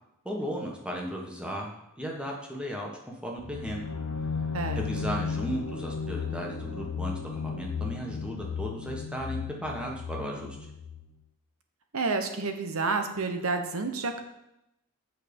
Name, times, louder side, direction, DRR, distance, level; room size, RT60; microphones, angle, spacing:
voice 1, 0.2-2.9 3.2-3.8 4.7-10.6, equal, 5° right, -1 dB, 1.4 m, -35 dB
sound 1, 3.4-11.1, left 6 dB, 80° left, 0.8 m, -35 dB
voice 2, 4.5-5.1 11.9-14.2, right 3 dB, 65° right, 6 dB, 1.0 m, -30 dB
7.4 x 5.6 x 5.3 m, 0.86 s
head